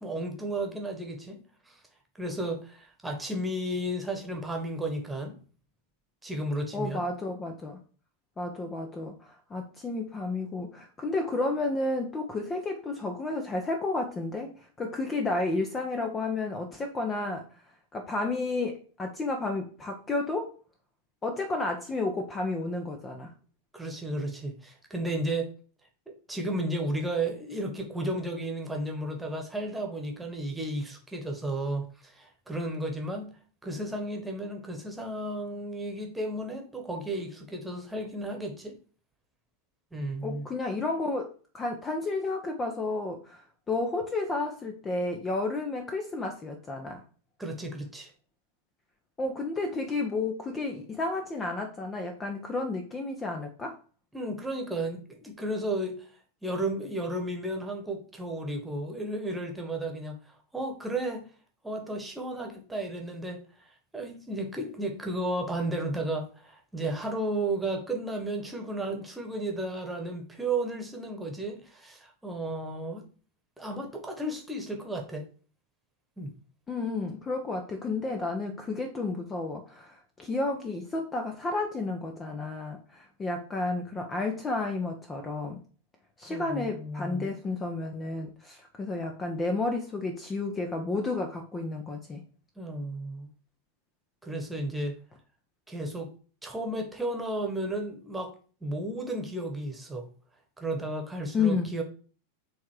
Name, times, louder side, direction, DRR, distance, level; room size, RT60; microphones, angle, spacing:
voice 1, 0.0-1.4 1.7-1.8 2.2-5.3 6.2-7.0 23.7-25.5 26.1-33.3 33.6-38.7 39.9-40.4 47.4-48.1 54.1-56.1 56.4-60.2 60.5-61.2 61.6-73.0 73.6-75.3 76.2-76.3 86.3-87.3 92.6-93.3 94.2-95.0 95.7-96.1 96.4-98.3 98.6-100.1 100.6-101.8, right 1 dB, 5° right, 3 dB, 1.6 m, -33 dB
voice 2, 6.7-7.8 8.4-17.5 17.9-20.5 21.2-23.3 40.2-41.3 41.5-43.4 43.7-47.0 49.2-53.8 76.7-85.6 86.2-92.2 101.3-101.7, left 3 dB, 20° left, 4 dB, 0.9 m, -31 dB
7.4 x 3.6 x 4.8 m, 0.39 s
figure-of-eight pair, 90°, 0 cm